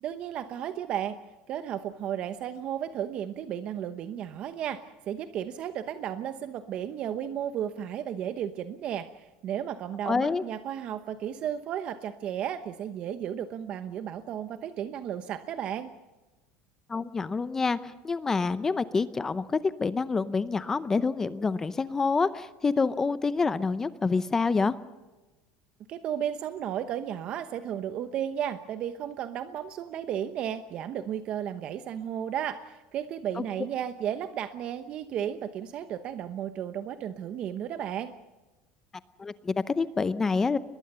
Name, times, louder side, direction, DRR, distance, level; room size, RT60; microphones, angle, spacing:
voice 1, 0.0-1.2 1.5-15.9 25.9-38.1, right 9 dB, 45° right, 10 dB, 0.9 m, -34 dB
voice 2, 10.0-10.4 16.9-24.7 39.2-40.6, left 4 dB, 15° left, 14 dB, 0.7 m, -27 dB
23.0 x 21.0 x 6.9 m, 1.1 s
cardioid pair, 145°, 3 cm